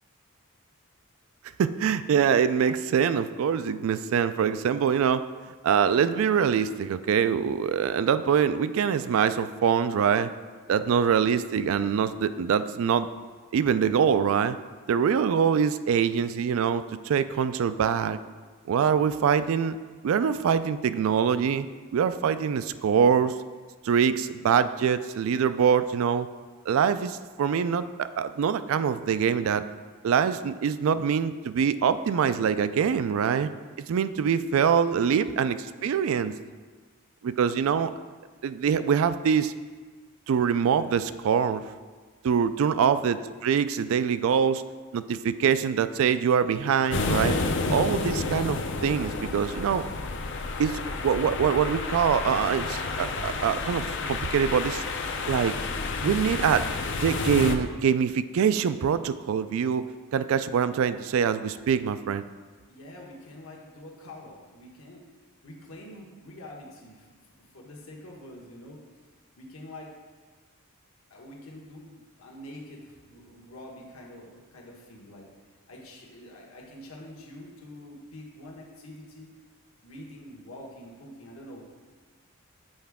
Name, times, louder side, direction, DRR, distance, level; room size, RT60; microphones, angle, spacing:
voice 1, 1.6-5.2 5.6-10.3 10.7-13.1 13.5-14.6 14.9-18.2 18.7-19.8 20.0-21.7 21.9-23.3 23.8-26.3 26.7-29.6 30.0-33.5 33.9-36.3 37.2-37.9 38.4-39.5 40.3-41.6 42.2-44.6 44.9-47.4 47.7-49.8 50.6-54.8 55.3-55.6 56.0-56.6 57.0-59.8 60.1-62.2, right 7 dB, 65° right, 13 dB, 0.3 m, -24 dB
voice 2, 42.7-43.0 62.7-65.0 65.4-67.1 67.4-68.8 69.4-69.9 71.1-75.3 75.7-79.3 79.8-81.7, left 1 dB, 70° left, -1 dB, 1.2 m, -46 dB
sound 1, 46.9-57.5, left 3 dB, 55° left, 0.5 m, -30 dB
7.8 x 4.7 x 3.5 m, 1.4 s
head